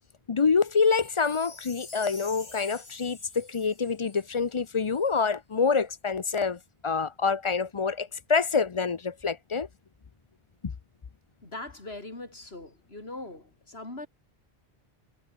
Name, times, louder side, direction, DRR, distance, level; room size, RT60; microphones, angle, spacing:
voice 1, 0.3-9.7 10.6-10.7, left 5 dB, 35° left, 0.6 m, -26 dB
Wind chime, 0.7-5.1 5.6-5.7, left 2 dB, 60° left, 3.4 m, -48 dB
voice 2, 11.4-14.1, left 2 dB, 80° left, 4.8 m, -41 dB
omnidirectional pair, 1.0 m